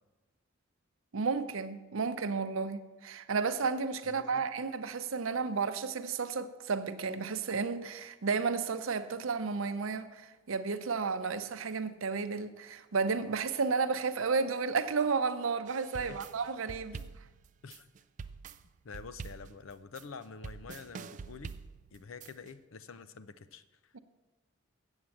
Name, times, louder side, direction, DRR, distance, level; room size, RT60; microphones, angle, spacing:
voice 1, 1.1-17.0 23.9-24.0, right 5 dB, 90° right, 0.6 m, -32 dB
voice 2, 4.0-4.5 16.0-16.2 16.9-17.2 17.6-17.9 18.8-21.5 21.9-23.9, left 5 dB, 80° left, 0.5 m, -48 dB
sound 1, 15.7-22.5, right 5 dB, 40° right, 0.3 m, -46 dB
8.0 x 7.6 x 7.1 m
head